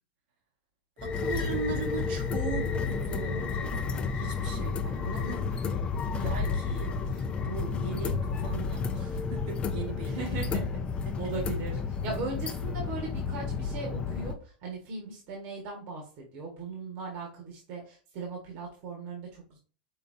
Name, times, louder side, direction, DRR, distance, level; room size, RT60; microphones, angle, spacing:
sound 1, 1.0-14.3, left 5 dB, 25° left, 0.5 m, -31 dB
voice 1, 1.0-10.3 11.0-11.3 12.1-12.2, right 6 dB, 75° right, 1.7 m, -39 dB
voice 2, 6.1-6.5 10.1-10.8 11.2-19.6, right 3 dB, 55° right, 1.6 m, -38 dB
5.5 x 3.4 x 2.6 m
supercardioid pair, 135°, 5 cm